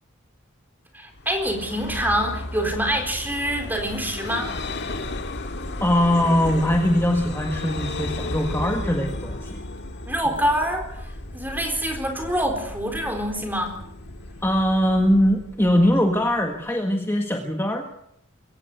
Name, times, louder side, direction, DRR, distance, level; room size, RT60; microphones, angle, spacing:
voice 1, 0.9-4.5 10.1-10.8 11.3-13.8, equal, 10° right, 4 dB, 4.2 m, -25 dB
Vehicle, 1.1-16.6, left 2 dB, 55° left, 1.9 m, -34 dB
voice 2, 5.8-9.6 14.4-17.9, equal, 10° left, 3 dB, 1.6 m, -21 dB
23.0 x 16.5 x 7.9 m, 0.77 s
head